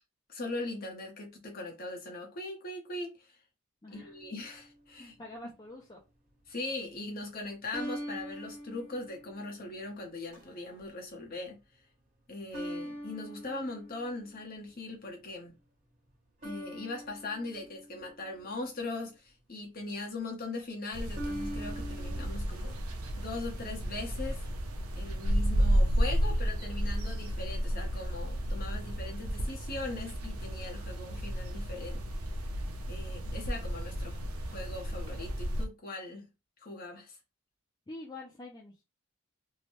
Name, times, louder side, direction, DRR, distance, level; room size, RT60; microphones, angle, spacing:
voice 1, 0.3-3.3 3.9-5.1 6.5-11.6 12.3-15.5 16.4-22.8 23.2-24.4 24.9-32.0 32.9-36.3 36.6-37.2, left 2 dB, 40° left, 0.9 m, -40 dB
voice 2, 3.8-4.1 5.0-6.0 37.9-38.8, left 2 dB, 20° left, 0.4 m, -46 dB
sound 1, 3.9-4.7 7.7-9.8 10.3-10.8 12.5-14.5 16.4-18.8 21.1-22.3, equal, 40° right, 1.2 m, -43 dB
sound 2, 20.9-35.7, equal, 90° right, 0.6 m, -32 dB
2.7 x 2.1 x 3.1 m
head